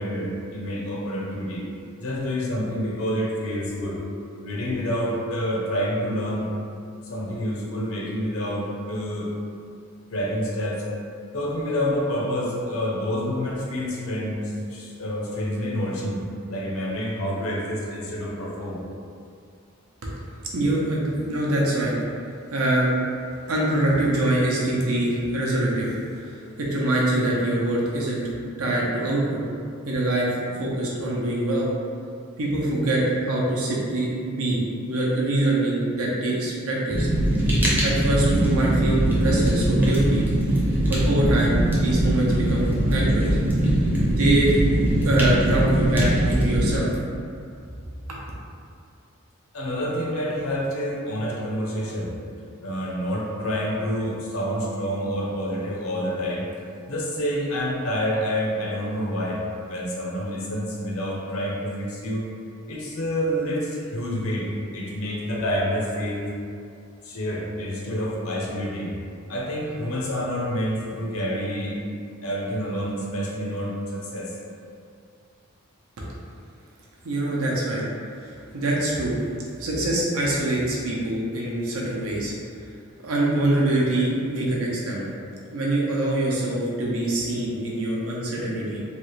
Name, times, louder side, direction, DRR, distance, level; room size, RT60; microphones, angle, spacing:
voice 1, 0.0-1.6 2.0-4.0 4.4-6.5 7.1-9.3 10.1-10.8 11.3-16.2 16.5-18.8 26.4-26.5 31.0-31.2 49.5-52.2 52.6-56.5 56.9-59.4 59.7-62.3 62.7-66.3 67.0-68.9 69.3-71.8 72.2-74.3, equal, 85° left, -3 dB, 0.7 m, -28 dB
voice 2, 20.5-21.9 22.5-22.9 23.5-28.2 28.6-29.4 29.8-30.3 30.6-31.7 32.4-34.6 34.9-37.1 37.8-40.2 40.9-43.4 44.1-44.5 45.0-46.9 48.1-48.2 76.0-76.1 77.0-77.8 78.2-79.1 79.6-82.3 83.0-85.1 85.5-88.8, right 1 dB, 90° right, -4 dB, 0.7 m, -24 dB
Fire, 36.9-46.8, right 1 dB, 10° right, 0.5 m, -21 dB
3.1 x 2.4 x 3.1 m, 2.4 s
head